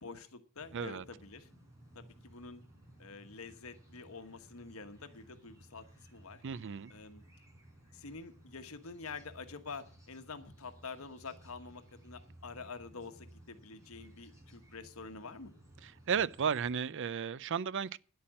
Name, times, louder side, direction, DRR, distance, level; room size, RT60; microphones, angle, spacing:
voice 1, 0.0-1.5 1.9-2.6 3.0-5.8 6.1-6.4 6.9-7.2 7.9-15.5, left 4 dB, 70° left, 1.3 m, -47 dB
sound 1, 0.6-16.7, right 1 dB, 15° right, 4.0 m, -58 dB
voice 2, 0.7-1.0 6.4-6.9 15.8-18.0, right 7 dB, 60° right, 0.5 m, -34 dB
10.5 x 8.6 x 7.5 m
head